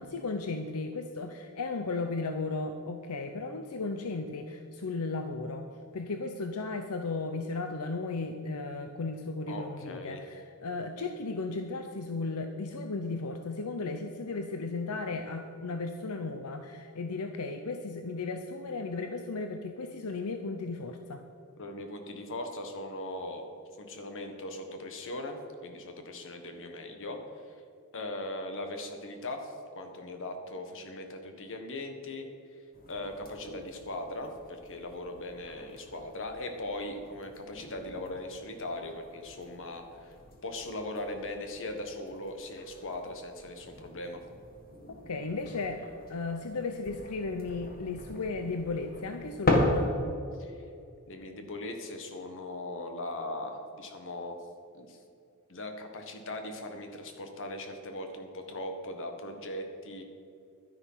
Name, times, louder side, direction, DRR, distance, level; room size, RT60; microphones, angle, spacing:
voice 1, 0.0-21.2 44.9-49.9, left 3 dB, 90° left, 7 dB, 0.7 m, -35 dB
voice 2, 9.5-10.2 21.6-23.5 23.8-27.2 27.4-27.5 27.9-32.6 32.9-40.1 40.4-44.2 50.4-50.6 51.1-54.4 54.7-55.0 55.5-60.0, left 1 dB, 60° left, 5 dB, 1.5 m, -39 dB
sound 1, 32.7-49.9, left 1 dB, 40° left, 1.7 m, -37 dB
11.5 x 10.0 x 5.7 m, 2.5 s
head